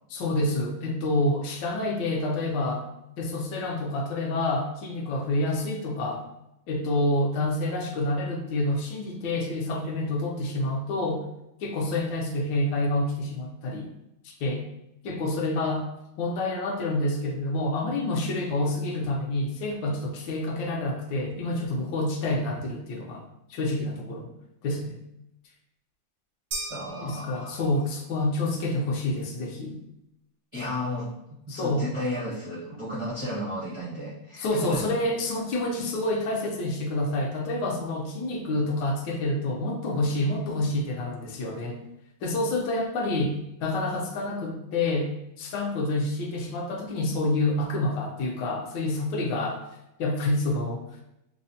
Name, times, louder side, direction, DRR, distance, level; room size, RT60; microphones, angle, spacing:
voice 1, 0.1-2.9 3.2-6.3 6.7-11.2 11.6-13.9 14.2-14.6 15.0-15.8 16.2-23.2 23.5-24.3 24.6-24.9 27.0-29.8 31.5-31.9 34.4-41.8 42.2-43.3 43.6-45.1 45.4-49.6 50.0-50.8, left 2 dB, 70° left, 1 dB, 1.3 m, -28 dB
sound 1, 26.5-28.0, right 2 dB, 65° right, 0.8 m, -38 dB
voice 2, 26.7-27.6 30.5-31.1 31.5-34.8, left 1 dB, 45° right, -9 dB, 0.4 m, -33 dB
5.4 x 2.1 x 2.6 m, 0.85 s
omnidirectional pair, 2.1 m